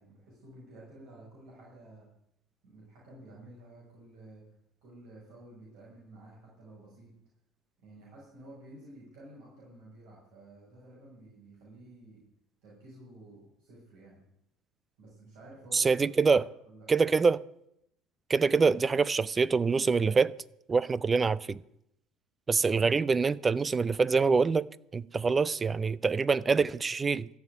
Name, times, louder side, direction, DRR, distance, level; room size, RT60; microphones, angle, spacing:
voice 1, 0.0-2.1 2.6-4.5 4.8-7.1 7.8-12.2 12.6-14.2 15.0-16.0 16.3-16.9, right 1 dB, 70° right, 6.1 m, -52 dB
voice 2, 15.7-16.4 16.9-17.4 18.3-20.4 20.7-21.6 22.5-24.7 24.9-27.3, right 4 dB, 25° right, 0.5 m, -25 dB
14.0 x 7.2 x 9.5 m
supercardioid pair, 105°, 0 cm